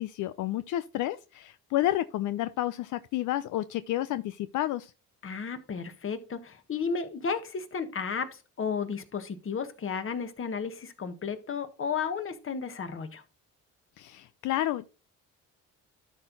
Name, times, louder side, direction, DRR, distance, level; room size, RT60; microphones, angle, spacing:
voice 1, 0.0-4.9 14.0-14.9, left 14 dB, 80° left, 0.5 m, -30 dB
voice 2, 5.2-13.2, left 5 dB, 45° left, 1.4 m, -33 dB
12.0 x 4.5 x 4.0 m
cardioid pair, 90°, 30 cm